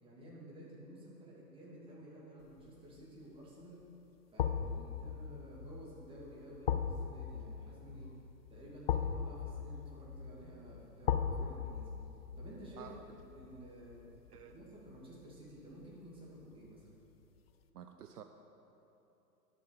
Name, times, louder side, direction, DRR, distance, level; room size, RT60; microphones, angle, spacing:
voice 1, 0.0-3.8 4.3-8.1 8.5-11.9 12.4-14.0 14.4-16.9, right 1 dB, 10° right, -6 dB, 2.4 m, -52 dB
sound 1, 2.6-3.0 4.4-15.4 15.7-15.9, left 8 dB, 40° left, 0.4 m, -39 dB
voice 2, 17.7-18.2, right 9 dB, 70° right, 7 dB, 0.7 m, -50 dB
11.0 x 7.3 x 5.1 m, 3.0 s
hypercardioid pair, 120°, 49 cm